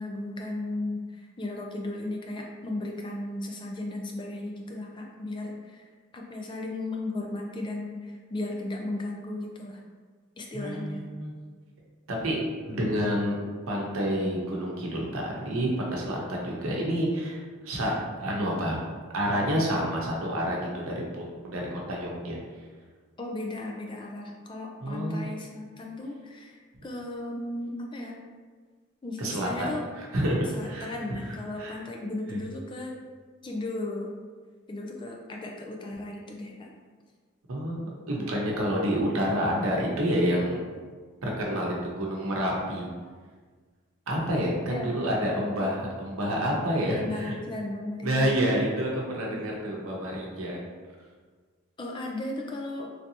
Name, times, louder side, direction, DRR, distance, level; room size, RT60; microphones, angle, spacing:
voice 1, 0.0-5.9 6.1-9.8 10.4-11.0 23.2-28.1 29.0-29.9 30.5-33.0 33.4-34.1 34.7-36.7 44.7-45.1 46.9-48.4 49.3-49.4 51.8-52.9, left 2 dB, 25° left, 0 dB, 0.4 m, -35 dB
voice 2, 10.5-11.3 12.1-12.4 12.6-13.4 13.7-17.9 18.2-18.8 19.1-22.4 24.8-25.2 29.2-29.7 30.0-30.9 31.3-31.8 32.3-32.4 37.5-40.6 41.2-42.9 44.1-47.3 48.0-50.6, equal, 90° right, -2 dB, 0.7 m, -28 dB
3.3 x 2.7 x 2.8 m, 1.5 s
head